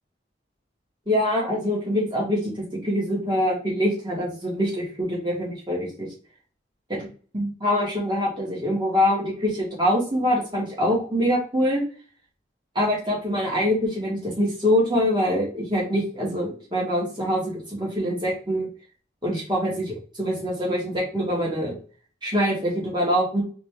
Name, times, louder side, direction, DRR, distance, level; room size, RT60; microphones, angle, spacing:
voice 1, 1.1-6.1 7.3-11.8 12.7-18.7 19.2-21.8 22.2-23.4, equal, 25° right, -3 dB, 1.7 m, -24 dB
4.1 x 3.4 x 3.4 m, 0.40 s
head